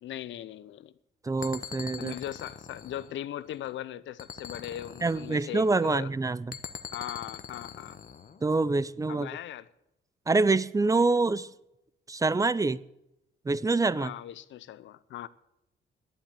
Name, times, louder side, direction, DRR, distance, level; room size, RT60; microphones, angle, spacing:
voice 1, 0.0-0.9 2.0-6.1 6.9-8.0 9.1-9.7 13.9-15.3, left 12 dB, 70° left, 0.7 m, -39 dB
voice 2, 1.2-2.1 5.0-6.6 8.4-9.3 10.3-11.5 12.1-12.8 13.5-14.1, right 3 dB, 15° right, 0.5 m, -26 dB
sound 1, 1.4-3.7 4.2-5.8 6.5-8.4, left 7 dB, 45° left, 1.1 m, -43 dB
10.5 x 8.9 x 8.5 m
cardioid pair, 90°, 20 cm